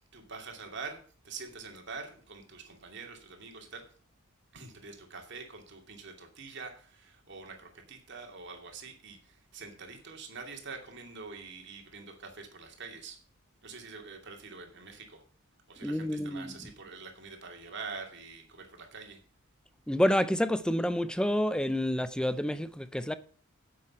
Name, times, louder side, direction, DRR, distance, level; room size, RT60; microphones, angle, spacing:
voice 1, 0.1-3.8 4.5-13.2 13.6-15.2 15.7-19.2, right 4 dB, 55° right, 2.5 m, -45 dB
voice 2, 15.8-16.5 19.9-23.1, equal, 5° left, 0.5 m, -28 dB
10.0 x 7.6 x 5.9 m
head